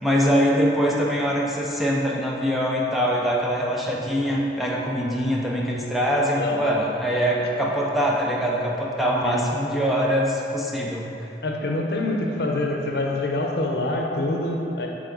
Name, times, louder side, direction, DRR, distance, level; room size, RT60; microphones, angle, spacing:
voice 1, 0.0-11.1, equal, ahead, -4 dB, 0.5 m, -23 dB
voice 2, 6.3-6.8 7.4-7.5 9.2-9.4 11.4-14.9, left 2 dB, 65° left, 0 dB, 0.7 m, -26 dB
7.8 x 3.7 x 3.9 m, 2.9 s
head